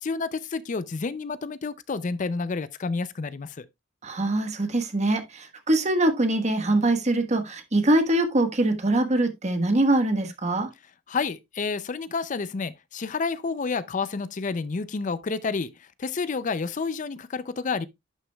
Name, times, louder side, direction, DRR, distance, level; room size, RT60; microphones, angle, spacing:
voice 1, 0.0-3.7 11.1-17.9, left 4 dB, 40° left, 0.5 m, -30 dB
voice 2, 4.0-10.7, right 1 dB, 40° right, 1.4 m, -23 dB
11.0 x 6.1 x 2.3 m
head